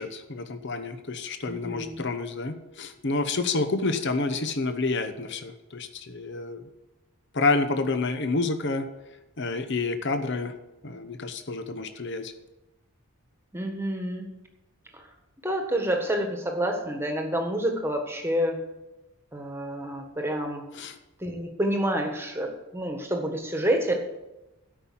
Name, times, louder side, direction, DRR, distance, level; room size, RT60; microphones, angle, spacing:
voice 1, 0.0-6.7 7.3-8.8 9.4-10.5 10.8-12.3 20.8-20.9, left 3 dB, 50° left, 8 dB, 0.9 m, -29 dB
voice 2, 1.5-2.0 13.5-14.2 14.9-15.1 15.4-18.6 19.3-20.6 21.2-23.9, right 1 dB, 10° right, 3 dB, 1.5 m, -28 dB
13.0 x 5.7 x 8.6 m, 1.0 s
head